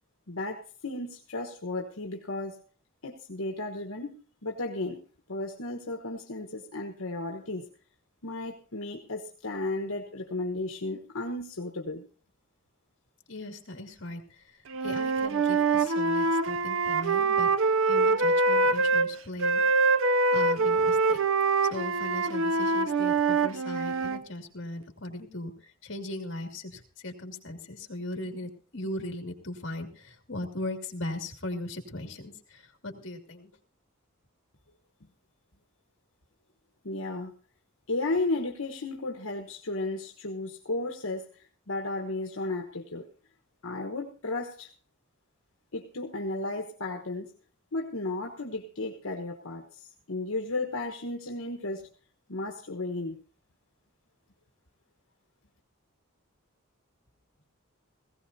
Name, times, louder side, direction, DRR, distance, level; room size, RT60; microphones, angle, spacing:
voice 1, 0.3-2.6 3.0-4.2 4.4-5.0 5.3-7.7 8.2-12.1 35.0-35.1 36.8-37.3 37.9-43.1 43.6-44.7 45.7-47.3 47.7-51.9 52.3-53.2, left 2 dB, 80° left, 2 dB, 1.2 m, -34 dB
voice 2, 13.3-19.6 20.3-21.2 21.7-33.5, left 1 dB, 55° left, 4 dB, 2.4 m, -38 dB
Wind instrument woodwind instrument, 14.7-19.1 19.4-24.2, right 3 dB, 65° right, 0.6 m, -24 dB
18.0 x 16.0 x 2.8 m, 0.38 s
head